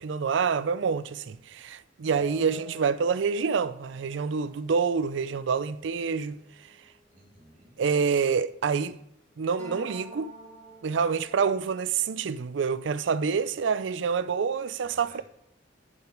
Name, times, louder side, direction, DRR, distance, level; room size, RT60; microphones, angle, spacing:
voice 1, 0.0-6.4 7.8-9.0 9.4-10.3 10.8-15.2, right 5 dB, 85° right, 0.4 m, -27 dB
sound 1, 2.1-7.6 9.6-11.5, right 1 dB, 5° left, 2.8 m, -49 dB
voice 2, 7.1-7.8 14.8-15.2, right 1 dB, 45° right, 3.0 m, -55 dB
10.5 x 6.1 x 5.0 m
head